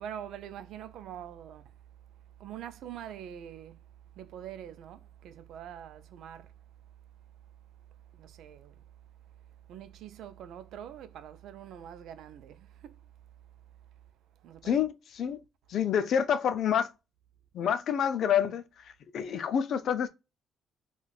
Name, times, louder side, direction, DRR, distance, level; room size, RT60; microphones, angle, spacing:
voice 1, 0.0-1.8 2.4-3.9 4.1-6.5 8.1-8.8 9.7-13.0 14.4-14.8, right 10 dB, 80° right, 0.4 m, -44 dB
voice 2, 14.6-15.4 15.7-16.9 17.5-20.1, left 8 dB, 65° left, 0.5 m, -28 dB
4.0 x 2.3 x 2.3 m
cardioid pair, 90°, 0 cm